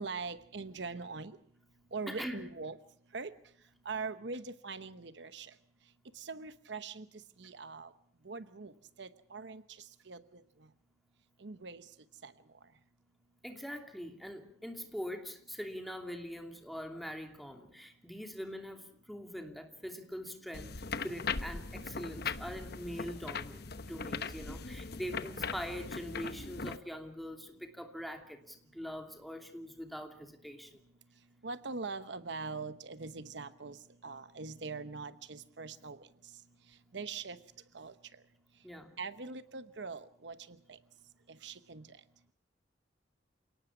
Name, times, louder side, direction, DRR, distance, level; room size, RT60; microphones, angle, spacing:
voice 1, 0.0-1.4 1.9-2.8 3.1-3.3 3.8-5.5 6.1-7.1 7.4-7.9 8.2-8.7 9.0-9.6 10.1-10.4 11.4-11.8 12.2-12.3 31.4-36.1 36.9-37.4 37.7-37.9 39.0-40.8 41.4-42.0, right 4 dB, 65° right, 12 dB, 1.0 m, -42 dB
voice 2, 2.1-2.4 13.4-30.8 38.6-38.9, equal, ahead, 4 dB, 2.8 m, -43 dB
sound 1, 20.5-26.8, left 5 dB, 60° left, 1.0 m, -39 dB
28.5 x 18.5 x 6.0 m, 0.64 s
head